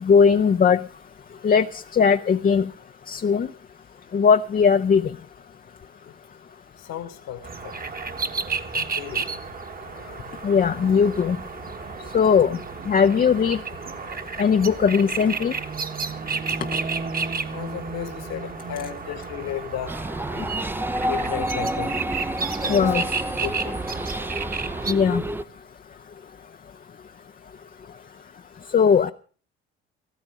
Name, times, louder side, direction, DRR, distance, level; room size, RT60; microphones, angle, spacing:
voice 1, 0.0-0.8 1.4-2.7 3.1-3.5 4.1-5.1 10.4-11.4 12.1-12.6 12.9-13.6 14.4-15.5 22.7-23.0 24.9-25.2 28.7-29.1, left 6 dB, 30° left, 0.6 m, -19 dB
voice 2, 6.8-7.7 8.7-9.4 17.5-20.0 21.0-22.0 22.6-23.7 25.1-25.3, left 10 dB, 65° left, 1.7 m, -34 dB
sound 1, 7.4-24.9, right 5 dB, 30° right, 1.4 m, -32 dB
sound 2, 19.9-25.4, right 1 dB, 5° right, 0.6 m, -29 dB
15.0 x 13.5 x 4.9 m
hypercardioid pair, 60°, 29 cm